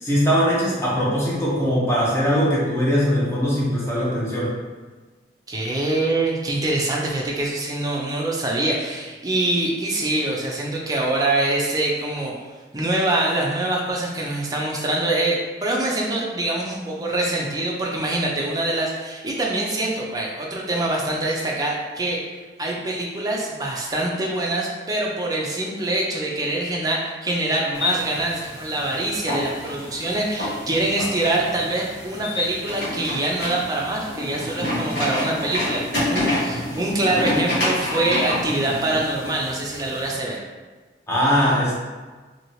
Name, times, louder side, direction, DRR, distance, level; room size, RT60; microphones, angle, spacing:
voice 1, 0.0-4.6 31.0-31.1 41.1-41.7, equal, 15° left, -7 dB, 0.8 m, -21 dB
voice 2, 5.5-12.3 12.7-22.2 22.6-40.4, right 2 dB, 20° right, -2 dB, 0.5 m, -24 dB
sound 1, 27.7-40.2, left 1 dB, 65° left, 1.2 m, -28 dB
2.8 x 2.8 x 3.0 m, 1.3 s
head